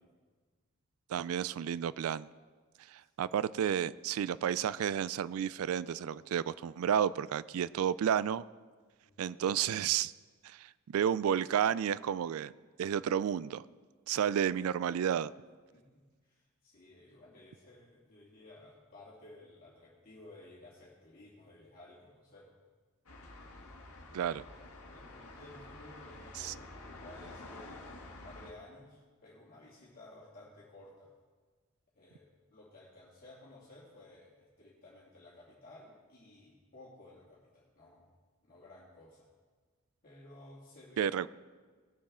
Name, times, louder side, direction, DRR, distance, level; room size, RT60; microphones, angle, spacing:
voice 1, 1.1-2.3 2.9-8.4 9.2-10.1 10.4-12.5 12.8-13.7 14.1-15.3 24.1-24.4 26.4-26.5 41.0-41.3, right 9 dB, 70° right, 17 dB, 0.3 m, -31 dB
voice 2, 9.0-9.5 15.7-15.8 16.2-22.5 24.4-24.5 24.9-31.1 31.9-38.1 38.4-39.3 40.0-41.3, left 1 dB, 40° left, -7 dB, 2.4 m, -55 dB
sound 1, 23.1-28.5, left 2 dB, 75° left, 1.6 m, -49 dB
19.0 x 7.3 x 3.7 m, 1.4 s
head